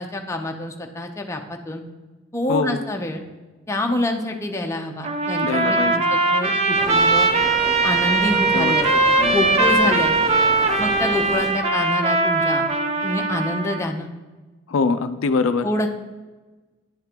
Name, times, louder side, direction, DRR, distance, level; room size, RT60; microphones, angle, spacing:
voice 1, 0.0-1.8 2.3-3.2 3.7-7.3 7.8-8.9 9.3-10.2 10.8-12.7 13.0-14.1 15.6-15.9, left 1 dB, 15° left, 3 dB, 0.6 m, -26 dB
voice 2, 2.5-2.8 5.4-6.0 8.5-9.5 9.8-10.0 14.7-15.7, left 4 dB, 70° left, 10 dB, 0.4 m, -24 dB
Trumpet, 5.0-13.9, right 3 dB, 30° right, 0.5 m, -20 dB
sound 1, 6.8-11.6, equal, ahead, 1.0 m, -33 dB
10.0 x 3.7 x 4.4 m, 1.2 s
head